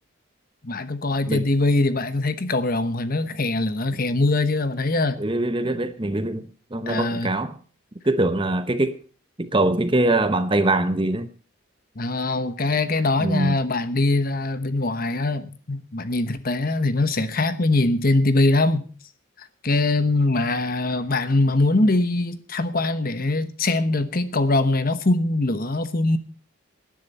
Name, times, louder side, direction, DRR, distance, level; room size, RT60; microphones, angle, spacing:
voice 1, 0.6-5.2 6.9-7.3 12.0-18.9 19.4-26.2, left 2 dB, 40° left, 1.1 m, -22 dB
voice 2, 5.2-7.6 8.0-9.0 9.4-11.3 13.2-13.6, right 2 dB, 25° right, 0.8 m, -23 dB
18.5 x 10.5 x 4.2 m
head